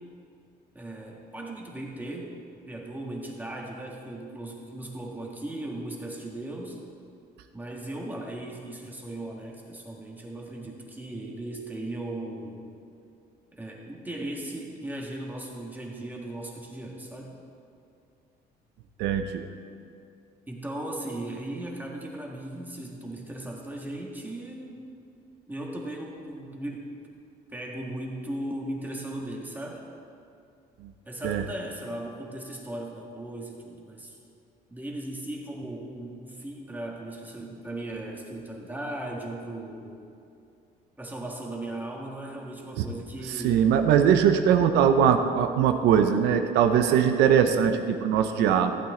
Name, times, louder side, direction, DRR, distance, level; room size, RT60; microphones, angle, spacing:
voice 1, 0.7-2.3 2.7-6.8 7.5-12.6 13.5-17.3 20.5-24.8 25.5-26.9 27.5-29.9 31.1-34.2 34.7-40.0 41.0-43.7 46.8-47.1, right 1 dB, 10° right, -2 dB, 1.7 m, -37 dB
voice 2, 19.0-19.5 31.2-31.4 43.4-48.8, right 8 dB, 85° right, 7 dB, 0.7 m, -21 dB
15.0 x 8.5 x 3.8 m, 2.5 s
cardioid pair, 110°, 17 cm